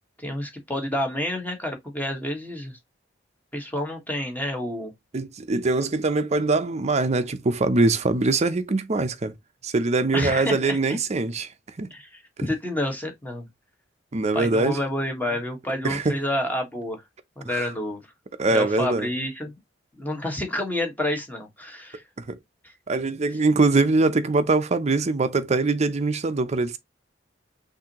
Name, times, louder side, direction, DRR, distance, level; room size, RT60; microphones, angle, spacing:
voice 1, 0.2-2.8 3.5-4.9 10.1-10.8 11.9-13.5 14.3-17.0 17.4-18.0 18.5-19.5 20.0-22.0 22.6-22.7, left 1 dB, 10° left, 1.4 m, -29 dB
voice 2, 5.1-9.3 9.6-11.5 11.8-11.9 14.1-14.8 15.8-16.2 17.5-17.7 18.4-19.1 22.3-22.4 22.9-26.8, right 3 dB, 35° right, 0.6 m, -23 dB
6.0 x 2.7 x 2.9 m
head